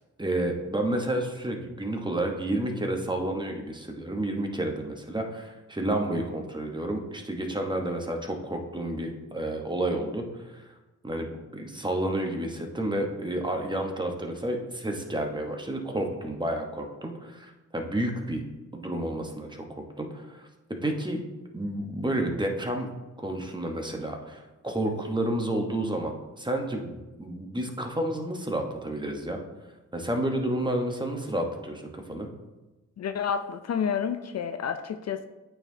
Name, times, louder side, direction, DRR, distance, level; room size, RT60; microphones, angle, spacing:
voice 1, 0.2-10.6 11.0-18.4 18.7-20.5 20.8-21.2 21.5-22.9 23.2-29.4 29.9-32.3, right 1 dB, 15° right, 3 dB, 1.0 m, -30 dB
voice 2, 33.0-35.3, left 7 dB, 55° left, 8 dB, 0.4 m, -30 dB
8.9 x 4.5 x 2.7 m, 1.1 s
cardioid pair, 65°, 31 cm